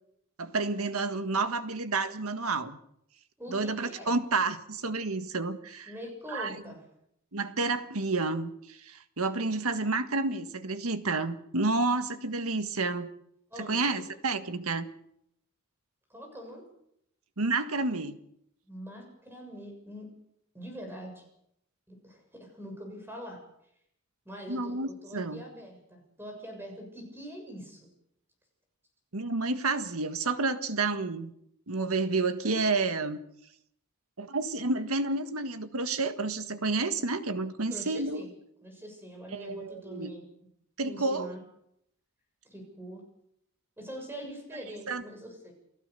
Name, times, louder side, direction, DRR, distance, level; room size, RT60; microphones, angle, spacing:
voice 1, 0.4-2.8 3.5-5.9 6.3-6.5 7.3-13.1 13.6-14.9 17.4-18.2 24.5-25.4 29.1-31.3 31.7-33.2 34.2-38.2 39.3-40.1 40.8-41.3 44.9-45.0, right 3 dB, 85° right, 9 dB, 1.6 m, -30 dB
voice 2, 3.4-4.2 5.9-6.8 13.5-14.0 16.1-16.6 18.7-20.1 20.5-21.2 21.9-23.4 24.3-27.9 37.7-38.3 38.6-40.3 40.9-41.4 42.4-43.1 43.8-45.5, equal, 10° right, 3 dB, 7.2 m, -43 dB
29.0 x 15.5 x 6.9 m, 0.75 s
head